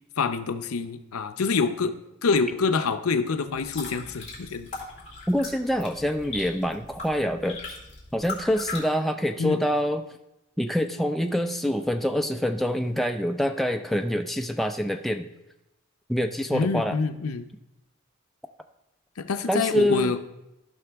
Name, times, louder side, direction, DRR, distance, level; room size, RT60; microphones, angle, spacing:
voice 1, 0.2-1.9 2.2-4.7 9.4-9.6 16.5-17.5 19.2-20.2, left 4 dB, 85° left, 9 dB, 0.6 m, -26 dB
sound 1, 3.5-8.8, left 3 dB, 30° left, 3.1 m, -39 dB
voice 2, 5.3-7.6 8.1-10.0 10.6-15.3 16.1-17.0 19.5-20.1, equal, ahead, 5 dB, 0.3 m, -26 dB
14.5 x 5.8 x 3.5 m, 0.91 s
head